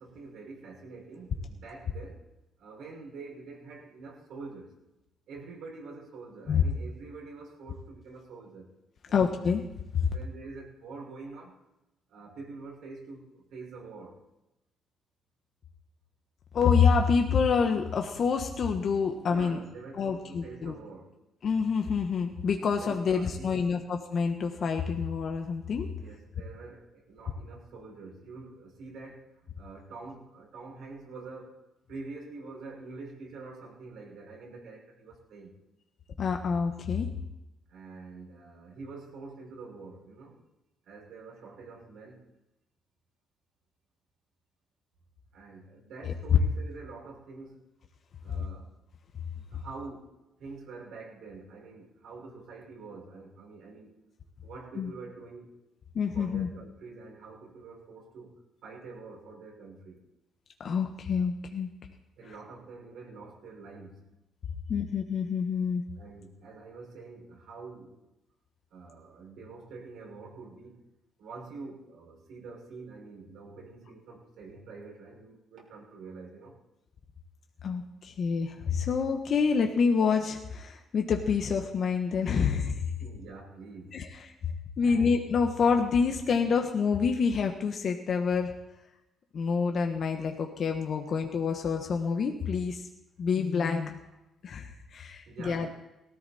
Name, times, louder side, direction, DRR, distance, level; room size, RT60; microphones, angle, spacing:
voice 1, 0.0-2.2 2.6-4.8 5.3-8.7 9.1-9.3 10.0-11.5 12.1-14.2 19.2-21.2 22.7-23.6 25.8-31.6 31.9-35.6 37.7-40.4 40.8-42.3 45.3-47.7 48.2-48.7 49.3-54.0 54.4-55.6 56.1-60.1 62.2-64.1 66.0-68.0 68.7-70.8 71.2-76.6 83.0-84.1 84.8-85.1 95.3-95.7, right 3 dB, 80° right, -2 dB, 6.0 m, -46 dB
voice 2, 9.1-9.6 9.9-10.1 16.5-19.6 19.9-20.7 21.4-25.9 36.2-37.1 46.0-46.1 49.5-49.6 54.8-54.9 55.9-56.5 60.6-61.7 64.7-65.8 77.6-82.8 83.9-84.1 84.4-84.5 84.8-88.5 89.3-92.9 93.2-94.0 94.4-95.7, left 5 dB, 55° left, 3 dB, 1.4 m, -27 dB
18.5 x 14.0 x 4.3 m, 0.93 s
cardioid pair, 90°, 0 cm